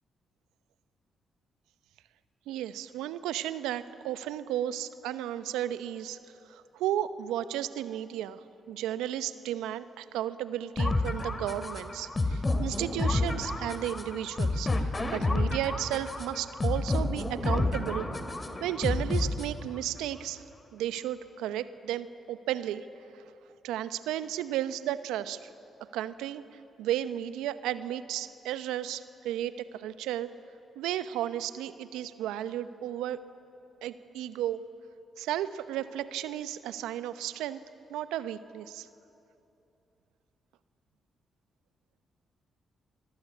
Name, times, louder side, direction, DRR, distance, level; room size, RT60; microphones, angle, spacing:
voice 1, 2.5-6.2 6.4-18.1 18.6-20.4 20.7-22.9 23.1-23.3 23.6-25.5 25.9-30.3 30.7-33.2 33.8-34.6 35.2-37.6 37.9-38.9, right 12 dB, 80° right, 13 dB, 0.8 m, -34 dB
sound 1, 10.8-19.8, left 2 dB, 30° left, 2.5 m, -29 dB
26.0 x 19.0 x 8.4 m, 2.9 s
hypercardioid pair, 45°, 0 cm